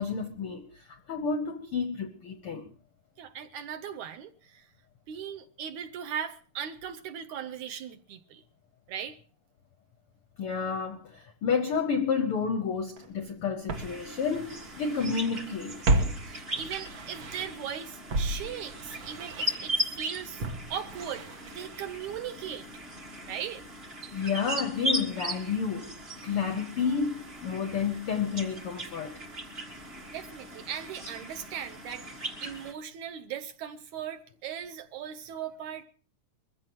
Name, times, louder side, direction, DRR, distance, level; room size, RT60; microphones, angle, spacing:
voice 1, 0.0-2.7 10.4-15.8 24.1-29.2, left 6 dB, 75° left, 1.2 m, -30 dB
voice 2, 3.2-4.6 5.1-8.4 8.9-9.2 16.2-20.4 20.7-22.7 23.3-23.6 30.1-32.1 32.4-35.8, right 8 dB, 70° right, 1.9 m, -38 dB
Walk footsteps, 13.0-13.1 13.7-15.2 15.4-17.7 18.1-22.1 22.4-22.5, right 2 dB, 55° right, 2.0 m, -33 dB
sound 1, 13.7-32.7, equal, 30° right, 1.1 m, -38 dB
22.5 x 15.0 x 3.0 m
omnidirectional pair, 3.9 m